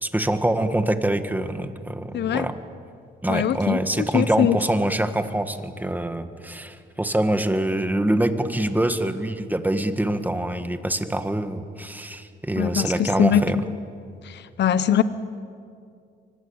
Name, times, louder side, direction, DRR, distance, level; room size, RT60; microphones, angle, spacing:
voice 1, 0.0-2.5 3.2-13.6, right 1 dB, 10° right, 8 dB, 1.7 m, -25 dB
voice 2, 2.1-2.5 3.3-4.6 12.6-13.4 14.2-15.0, left 10 dB, 60° left, 14 dB, 0.9 m, -22 dB
24.5 x 19.5 x 8.8 m, 2.3 s
cardioid pair, 90°, 20 cm